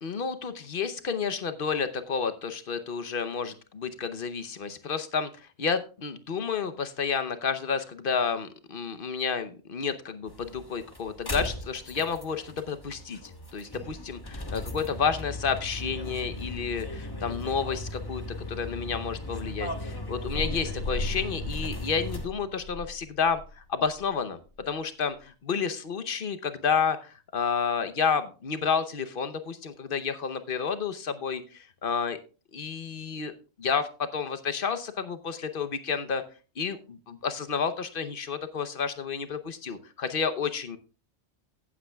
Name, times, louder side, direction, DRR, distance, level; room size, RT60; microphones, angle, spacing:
voice 1, 0.0-5.3 5.6-13.2 13.5-18.2 18.5-23.4 23.7-24.4 24.7-32.2 32.5-33.3 33.6-36.2 36.6-40.8, left 6 dB, 50° left, 11 dB, 1.0 m, -30 dB
sound 1, 10.3-22.3, left 1 dB, 20° left, 1.1 m, -38 dB
sound 2, 20.3-24.0 24.6-24.7, left 2 dB, 90° left, 3.2 m, -36 dB
15.5 x 8.6 x 2.3 m, 0.34 s
omnidirectional pair, 1.3 m